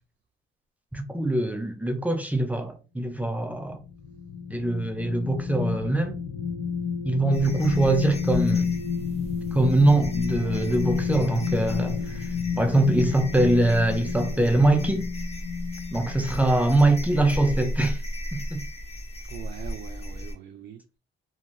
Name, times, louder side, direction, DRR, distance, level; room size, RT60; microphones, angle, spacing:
voice 1, 0.9-3.8 4.5-6.2 7.0-8.7 9.5-12.2 12.6-15.0 15.9-18.0 18.3-18.6, right 2 dB, 5° right, 0.5 m, -23 dB
sound 1, 3.5-16.3 16.8-16.9, left 6 dB, 70° left, 0.6 m, -30 dB
sound 2, 7.3-20.3, equal, 30° left, 0.9 m, -36 dB
voice 2, 10.4-10.7 19.2-20.8, right 9 dB, 60° right, 0.5 m, -42 dB
2.9 x 2.7 x 2.5 m
cardioid pair, 90°, 20 cm